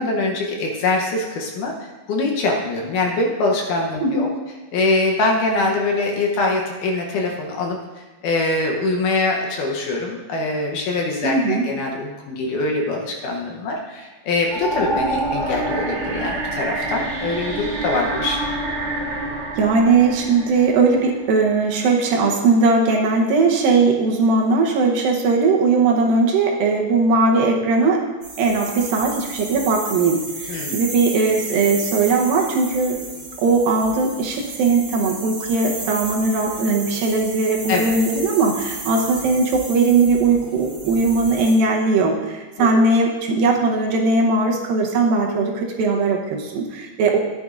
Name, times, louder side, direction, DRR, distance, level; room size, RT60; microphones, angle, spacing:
voice 1, 0.0-1.7 2.1-4.3 4.7-7.8 8.2-18.4 30.5-30.8 37.7-37.8 42.6-42.8, left 2 dB, 70° left, 1 dB, 2.2 m, -23 dB
voice 2, 11.2-11.7 19.6-28.1 28.4-33.0 33.4-47.2, right 3 dB, 75° right, 0 dB, 2.6 m, -19 dB
sound 1, 14.5-21.6, right 2 dB, 50° right, 1.8 m, -27 dB
sound 2, 28.2-41.5, right 2 dB, 35° right, 4.0 m, -33 dB
14.0 x 9.5 x 2.5 m, 1.2 s
omnidirectional pair, 4.3 m